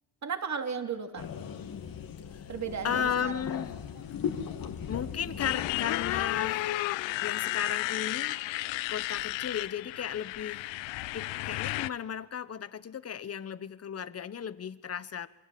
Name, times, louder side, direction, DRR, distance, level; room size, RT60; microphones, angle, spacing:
voice 1, 0.2-1.3 2.5-3.4, right 6 dB, 40° right, 7 dB, 2.9 m, -35 dB
sound 1, 1.2-6.6, left 8 dB, 50° left, 2.4 m, -38 dB
voice 2, 2.8-3.8 4.9-6.7 7.2-8.4 8.9-10.7 11.1-15.3, left 8 dB, 35° left, 15 dB, 1.2 m, -35 dB
Motorcycle, 5.4-11.9, left 18 dB, 80° left, 0.8 m, -33 dB
27.0 x 22.5 x 7.8 m, 1.0 s
cardioid pair, 95°, 44 cm